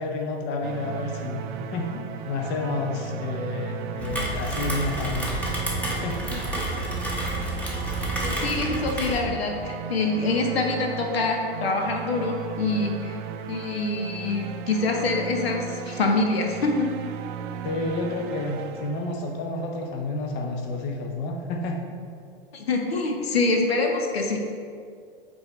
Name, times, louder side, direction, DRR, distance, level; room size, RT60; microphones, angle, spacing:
voice 1, 0.0-5.4 6.0-6.5 17.6-22.1, left 2 dB, 35° left, 2 dB, 0.7 m, -30 dB
sound 1, 0.6-19.5, right 8 dB, 55° right, 0.5 m, -36 dB
Rain, 4.0-9.2, right 1 dB, 5° left, 0.9 m, -29 dB
voice 2, 8.2-13.2 13.5-16.9 22.5-24.4, left 3 dB, 80° left, 3 dB, 0.9 m, -25 dB
8.6 x 3.7 x 3.1 m, 2.3 s
hypercardioid pair, 110°, 30 cm